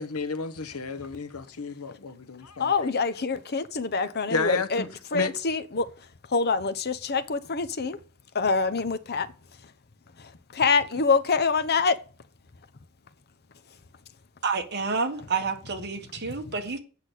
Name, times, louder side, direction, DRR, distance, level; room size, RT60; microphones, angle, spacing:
voice 1, 0.0-2.7 4.3-4.9 5.1-5.3, left 4 dB, 85° left, 1.1 m, -31 dB
voice 2, 2.6-4.8 5.1-8.0 8.3-9.3 9.6-9.7 10.2-12.0 16.3-16.5, left 4 dB, 50° left, 0.9 m, -26 dB
voice 3, 14.4-16.8, right 4 dB, 50° right, 1.6 m, -29 dB
8.4 x 6.1 x 8.2 m
head